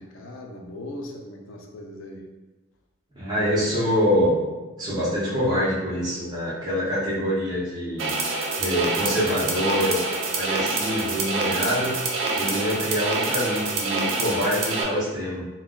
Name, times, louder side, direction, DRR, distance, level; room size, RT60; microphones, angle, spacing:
voice 1, 0.0-2.2 7.3-7.5, left 1 dB, 80° left, 2 dB, 0.5 m, -39 dB
voice 2, 3.1-4.4 4.8-8.1 8.6-10.0 10.4-12.0 12.3-15.5, equal, 20° right, -10 dB, 0.7 m, -25 dB
sound 1, 8.0-14.8, right 3 dB, 70° right, 0.5 m, -26 dB
2.3 x 2.2 x 3.6 m, 1.1 s
head